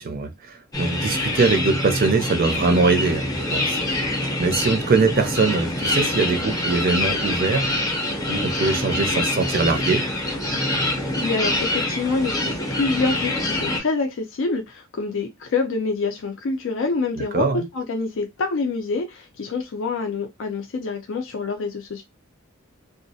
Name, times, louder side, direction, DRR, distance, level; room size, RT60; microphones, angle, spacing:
voice 1, 0.0-4.1 4.4-7.7 8.3-10.1 17.2-17.6, right 4 dB, 45° right, 0.5 m, -22 dB
sound 1, 0.7-13.8, left 1 dB, 20° left, 0.6 m, -25 dB
voice 2, 11.1-22.0, left 4 dB, 65° left, 0.4 m, -26 dB
2.3 x 2.0 x 2.6 m
head